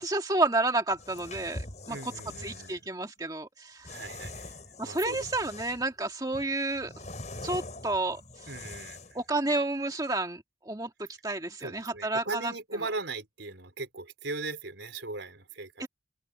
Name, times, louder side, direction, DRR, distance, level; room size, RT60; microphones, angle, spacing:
voice 1, 0.0-2.1 2.4-3.9 4.8-7.0 7.4-8.2 9.2-10.9 11.2-12.5 15.8-15.9, right 2 dB, 20° right, 1.9 m, -30 dB
sound 1, 0.9-2.8 3.8-5.9 6.3-9.2, left 2 dB, 40° left, 5.2 m, -43 dB
voice 2, 1.8-2.9 3.9-5.2 8.5-9.0 11.6-15.9, right 3 dB, 75° right, 4.4 m, -39 dB
open air
head